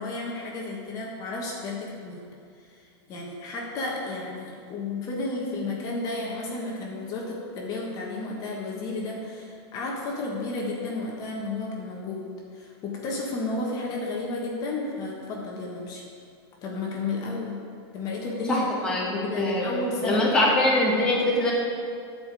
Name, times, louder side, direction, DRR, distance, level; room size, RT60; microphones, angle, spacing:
voice 1, 0.0-2.2 2.6-12.3 12.5-16.0 16.6-17.6 17.9-20.5, left 2 dB, 25° left, -2 dB, 1.4 m, -32 dB
voice 2, 18.5-19.7 20.0-21.5, left 1 dB, 5° left, -6 dB, 1.5 m, -23 dB
12.0 x 5.0 x 6.9 m, 2.3 s
supercardioid pair, 165°, 14 cm